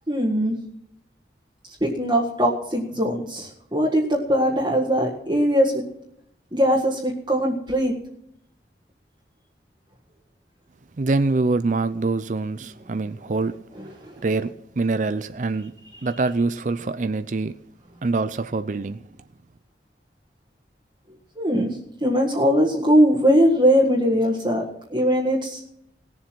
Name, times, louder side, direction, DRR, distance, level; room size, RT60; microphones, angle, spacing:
voice 1, 0.1-0.6 1.8-5.8 6.5-7.9 14.0-14.1 21.4-24.6 24.9-25.6, equal, 25° right, 1.7 m, -20 dB
voice 2, 11.0-13.5 14.2-15.7 16.0-17.5 18.0-19.0, right 3 dB, 45° right, 0.5 m, -24 dB
19.0 x 7.3 x 6.1 m
head